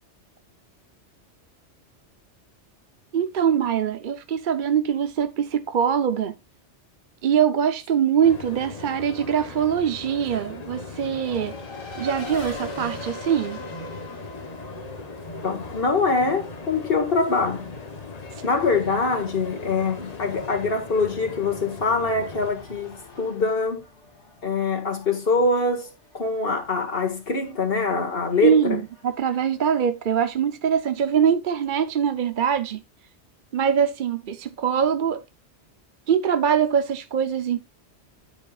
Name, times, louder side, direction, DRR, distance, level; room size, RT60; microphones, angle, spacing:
voice 1, 3.1-6.4 7.2-11.6 12.0-13.6 18.3-18.4 28.4-32.8 33.5-35.2 36.1-37.6, right 8 dB, 50° right, 0.8 m, -23 dB
sound 1, 8.2-22.5, left 3 dB, 35° left, 1.1 m, -38 dB
Race car auto racing, 10.9-30.0, left 1 dB, 85° left, 2.4 m, -44 dB
voice 2, 15.4-17.7 18.4-23.8 24.4-28.8, left 4 dB, 55° left, 2.0 m, -24 dB
10.5 x 7.2 x 2.4 m
omnidirectional pair, 1.2 m